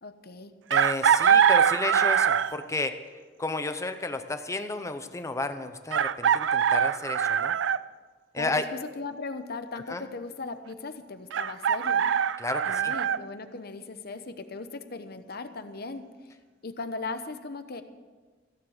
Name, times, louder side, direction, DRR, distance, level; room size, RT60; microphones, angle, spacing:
voice 1, 0.0-0.5 8.4-12.1 12.7-16.0 16.6-17.8, left 3 dB, 60° left, 9 dB, 1.0 m, -38 dB
voice 2, 0.7-3.0 3.4-7.6 8.3-8.7 9.9-10.1 12.4-12.9, left 2 dB, 15° left, 9 dB, 0.8 m, -32 dB
Chicken rooster, 0.7-2.6 4.3-4.4 5.9-7.8 11.3-13.2, right 8 dB, 85° right, 0.4 m, -23 dB
16.0 x 7.4 x 8.0 m, 1.4 s
head